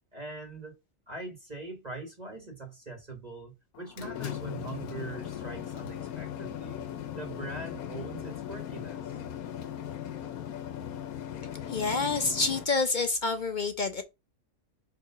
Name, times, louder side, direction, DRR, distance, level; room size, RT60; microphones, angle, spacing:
voice 1, 0.1-0.8 1.1-6.8 7.1-9.2, right 3 dB, 30° right, 1.5 m, -42 dB
sound 1, 3.7-12.7, left 10 dB, 90° left, 1.2 m, -38 dB
voice 2, 11.7-14.0, left 3 dB, 50° left, 0.6 m, -28 dB
4.8 x 3.9 x 5.6 m
omnidirectional pair, 1.5 m